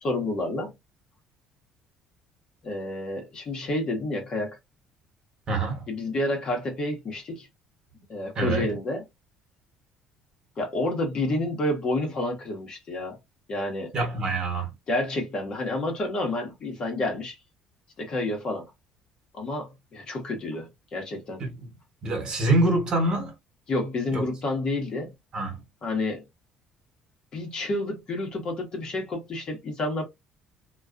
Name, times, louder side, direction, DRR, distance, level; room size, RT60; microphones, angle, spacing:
voice 1, 0.0-0.7 2.6-4.6 5.9-7.5 8.1-9.0 10.6-13.2 13.5-13.9 14.9-17.4 18.0-18.7 19.3-21.4 23.7-25.1 25.8-26.2 27.3-30.1, left 2 dB, 45° left, 1.1 m, -29 dB
voice 2, 5.5-5.9 8.3-8.7 13.9-14.7 21.4-21.7 22.0-23.3 24.1-24.2 25.3-25.6, right 2 dB, 45° right, 1.2 m, -25 dB
2.4 x 2.2 x 2.5 m
cardioid pair, 110°, 2 cm